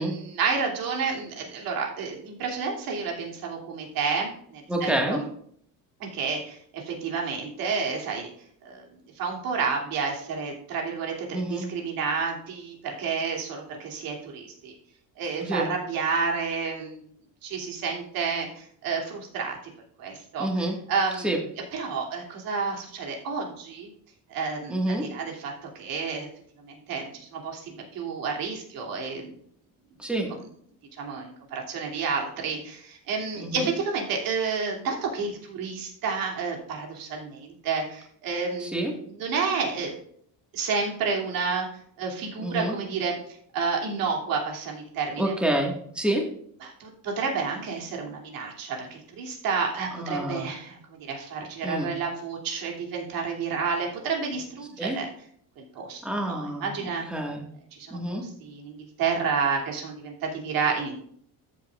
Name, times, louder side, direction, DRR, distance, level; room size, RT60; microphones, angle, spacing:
voice 1, 0.0-5.3 6.0-8.3 8.6-8.9 9.2-14.7 15.2-17.0 17.4-19.6 20.0-21.3 21.7-23.9 24.3-26.3 26.6-29.3 30.3-30.4 31.0-39.9 40.5-41.6 42.0-43.2 43.5-45.3 46.6-55.1 55.6-56.0 56.3-57.0 57.7-61.0, right 5 dB, 80° right, 0 dB, 2.9 m, -30 dB
voice 2, 4.7-5.2 11.3-11.7 15.4-15.7 20.4-20.8 21.2-21.4 24.7-25.0 30.0-30.3 33.4-33.7 38.6-38.9 42.4-42.8 45.2-46.2 50.0-50.5 51.6-51.9 54.8-55.0 56.0-57.4 57.9-58.2, right 1 dB, 5° right, 0 dB, 1.7 m, -28 dB
14.0 x 7.6 x 2.5 m, 0.64 s
cardioid pair, 140°, 34 cm